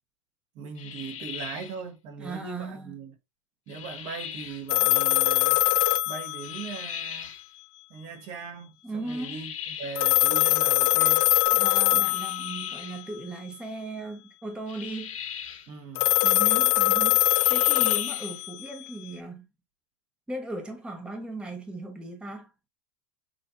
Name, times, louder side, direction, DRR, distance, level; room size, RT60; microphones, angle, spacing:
voice 1, 0.5-3.2 3.7-5.6 6.0-7.3 7.9-11.3 15.7-16.1, right 5 dB, 40° right, 1.2 m, -40 dB
sound 1, 0.8-1.8 3.7-4.7 6.4-7.5 9.1-10.1 12.0-13.1 14.7-15.7 17.3-18.4, left 9 dB, 90° left, 1.7 m, -39 dB
voice 2, 2.2-2.9 8.8-9.4 11.5-15.2 16.2-19.5 20.3-22.5, right 2 dB, 5° right, 0.9 m, -37 dB
sound 2, 4.7-7.0 10.0-12.8 16.0-18.9, left 21 dB, 50° left, 0.4 m, -22 dB
6.4 x 2.7 x 2.5 m
hypercardioid pair, 125°, 17 cm